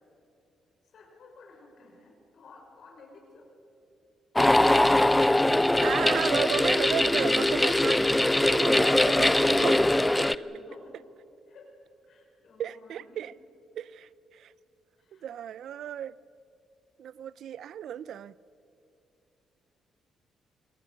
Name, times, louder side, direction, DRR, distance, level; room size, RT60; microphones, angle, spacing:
voice 1, 0.9-3.5 9.8-10.9 11.5-11.8 12.1-13.2 15.0-15.3, left 3 dB, 65° left, 1 dB, 5.8 m, -52 dB
sound 1, 4.4-10.4, left 1 dB, 10° left, 0.6 m, -22 dB
voice 2, 5.8-9.9 12.6-13.3 13.8-14.5 15.1-16.1 17.0-18.3, right 10 dB, 70° right, 19 dB, 0.5 m, -34 dB
28.5 x 21.5 x 6.6 m, 2.7 s
cardioid pair, 75°, 0 cm